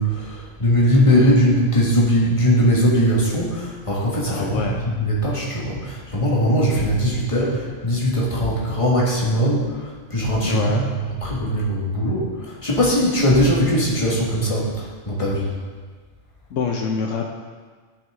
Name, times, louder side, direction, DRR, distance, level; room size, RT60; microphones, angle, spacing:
voice 1, 0.0-10.8 11.2-15.5, equal, 25° left, -5 dB, 1.8 m, -20 dB
voice 2, 4.3-4.8 10.4-10.8 16.5-17.3, left 5 dB, 75° left, 2 dB, 1.0 m, -25 dB
11.5 x 6.0 x 3.7 m, 1.5 s
omnidirectional pair, 1.3 m